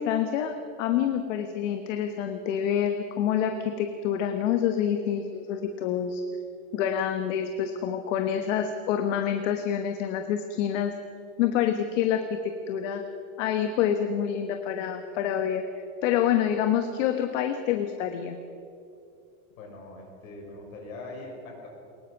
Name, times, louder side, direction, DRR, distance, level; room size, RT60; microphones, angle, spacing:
voice 1, 0.0-6.2 6.7-10.9 11.4-13.0 13.4-15.6 16.0-18.4, left 9 dB, 60° left, 7 dB, 1.3 m, -27 dB
voice 2, 19.6-21.7, left 2 dB, 75° left, 0 dB, 5.9 m, -42 dB
22.5 x 20.0 x 5.9 m, 2.6 s
supercardioid pair, 165°, 42 cm